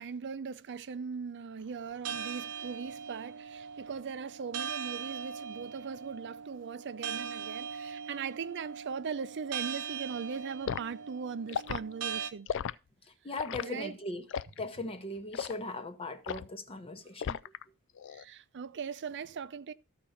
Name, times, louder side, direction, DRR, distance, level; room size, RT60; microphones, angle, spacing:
voice 1, 0.0-12.5 13.6-13.9 18.1-19.7, right 6 dB, 55° right, 0.5 m, -39 dB
sound 1, 2.1-12.3, right 7 dB, 90° right, 0.9 m, -40 dB
Liquid, 10.7-10.9 11.5-11.8 12.5-12.7 13.4-13.7 14.3-14.6 15.3-15.6 16.3-16.5 17.2-17.6 18.0-18.2, left 7 dB, 55° left, 0.4 m, -35 dB
voice 2, 13.2-14.2 14.6-17.4, left 2 dB, 25° left, 0.9 m, -39 dB
13.0 x 4.4 x 5.6 m
head